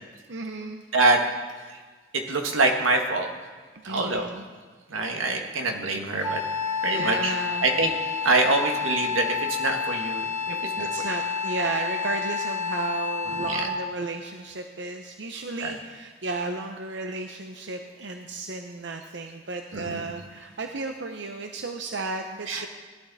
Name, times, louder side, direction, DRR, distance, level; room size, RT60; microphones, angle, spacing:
voice 1, 0.3-0.8 3.7-4.5 6.9-7.7 10.8-22.7, right 3 dB, 60° right, 4 dB, 0.7 m, -33 dB
voice 2, 2.1-3.3 3.8-4.3 4.9-6.4 6.8-7.3 7.6-7.9 8.2-11.1 13.4-13.7 15.6-15.7 19.7-20.1 22.5-22.7, right 3 dB, 90° right, 3 dB, 1.5 m, -25 dB
Wind instrument woodwind instrument, 6.2-13.9, left 5 dB, 85° left, 2.3 m, -29 dB
17.5 x 11.5 x 4.1 m, 1.4 s
head